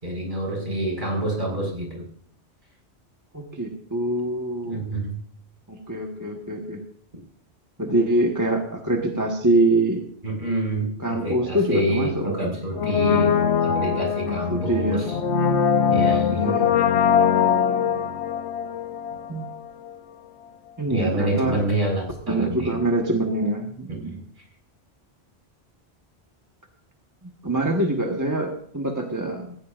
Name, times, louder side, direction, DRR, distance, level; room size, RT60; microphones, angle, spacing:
voice 1, 0.0-2.0 4.6-5.2 10.2-15.2 15.9-16.5 20.9-22.8 23.9-24.2, right 1 dB, 50° right, -1 dB, 5.0 m, -27 dB
voice 2, 3.3-4.8 5.7-6.8 7.8-10.0 11.0-12.6 14.2-15.1 16.3-16.8 19.3-19.5 20.8-21.6 22.3-24.2 27.2-29.6, right 2 dB, 15° right, 1 dB, 1.3 m, -24 dB
Brass instrument, 12.7-19.6 19.8-19.9, left 7 dB, 85° left, 1.1 m, -22 dB
18.0 x 15.5 x 2.5 m, 0.65 s
omnidirectional pair, 1.1 m